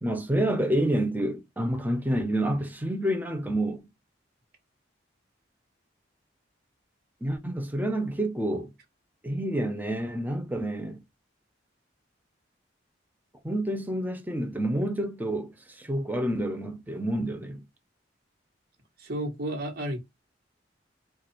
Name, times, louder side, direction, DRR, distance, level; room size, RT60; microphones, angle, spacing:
voice 1, 0.0-3.8 7.2-8.7 9.2-11.0 13.4-17.6, right 1 dB, 10° right, 0.8 m, -28 dB
voice 2, 19.0-20.0, right 1 dB, 55° right, 1.6 m, -32 dB
4.7 x 2.5 x 4.4 m
head